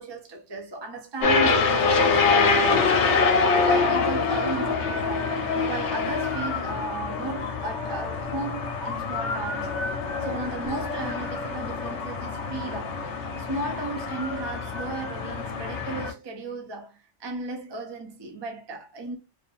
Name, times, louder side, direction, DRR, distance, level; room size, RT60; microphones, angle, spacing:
voice 1, 0.0-3.1 3.6-5.3 5.6-9.8 10.2-13.0 13.4-19.2, right 2 dB, 40° right, 0.3 m, -35 dB
sound 1, 1.2-16.1, left 4 dB, 70° left, 0.9 m, -25 dB
2.6 x 2.5 x 2.3 m
omnidirectional pair, 1.3 m